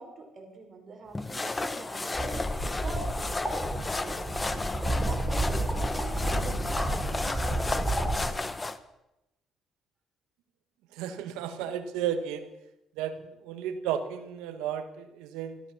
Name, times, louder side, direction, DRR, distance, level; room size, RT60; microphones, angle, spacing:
voice 1, 0.0-3.1 3.7-4.4 4.8-8.1, right 2 dB, 45° right, 3 dB, 5.0 m, -44 dB
sound 1, 1.1-8.8, left 2 dB, 20° left, 1.1 m, -33 dB
sound 2, 2.1-8.3, right 1 dB, ahead, 4.8 m, -31 dB
voice 2, 10.9-12.5 13.0-15.6, right 9 dB, 90° right, 10 dB, 1.5 m, -33 dB
14.0 x 13.0 x 7.3 m, 0.91 s
supercardioid pair, 75°, 0 cm